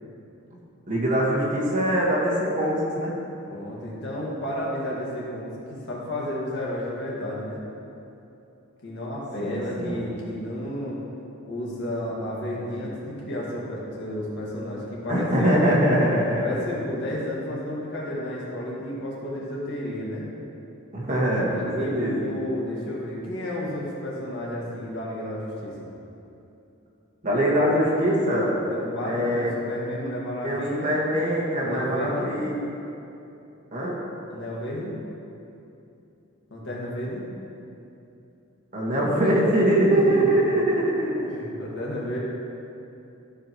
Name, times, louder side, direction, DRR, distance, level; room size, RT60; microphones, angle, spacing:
voice 1, 0.9-3.1 9.4-10.0 15.1-16.4 20.9-22.2 27.2-28.5 29.0-29.5 30.4-32.6 33.7-34.0 38.7-41.3, right 1 dB, 40° right, -5 dB, 1.6 m, -23 dB
voice 2, 3.5-7.6 8.8-11.0 11.5-15.8 16.4-20.3 21.3-25.9 28.7-31.0 31.6-32.3 34.3-35.0 36.5-37.2 39.9-40.4 41.3-42.2, left 1 dB, 55° left, -5 dB, 1.8 m, -32 dB
14.5 x 4.9 x 3.0 m, 2.8 s
head